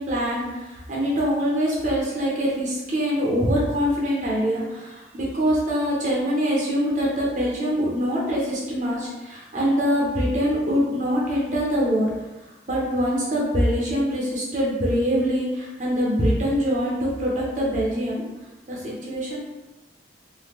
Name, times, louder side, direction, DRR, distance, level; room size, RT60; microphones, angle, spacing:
voice 1, 0.0-12.1 12.7-18.2 18.7-19.4, equal, 45° right, -4 dB, 0.6 m, -24 dB
2.9 x 2.2 x 3.4 m, 1.1 s
head